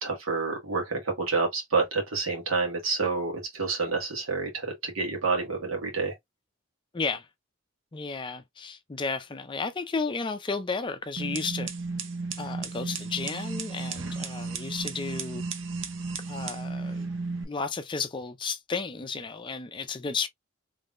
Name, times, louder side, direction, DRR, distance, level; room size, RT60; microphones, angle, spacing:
voice 1, 0.0-6.1, right 4 dB, 90° right, 1.6 m, -28 dB
voice 2, 6.9-7.3 7.9-11.7 12.4-15.4 16.3-17.1 17.4-20.3, left 4 dB, 25° left, 0.4 m, -33 dB
sound 1, 11.2-17.4, right 4 dB, 65° right, 0.7 m, -34 dB
3.6 x 3.2 x 2.4 m
head